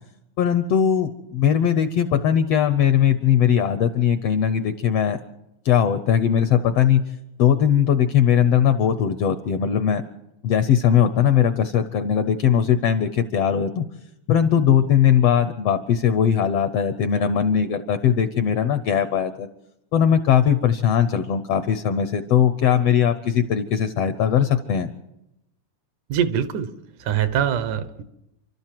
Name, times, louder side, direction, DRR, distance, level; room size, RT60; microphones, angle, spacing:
voice 1, 0.4-5.2 5.6-7.0 7.4-10.0 10.4-13.9 14.3-19.5 19.9-24.9, left 8 dB, 70° left, 10 dB, 1.6 m, -19 dB
voice 2, 26.1-26.7 27.0-28.0, right 9 dB, 80° right, 12 dB, 2.6 m, -23 dB
29.0 x 12.5 x 7.6 m, 0.90 s
omnidirectional pair, 3.5 m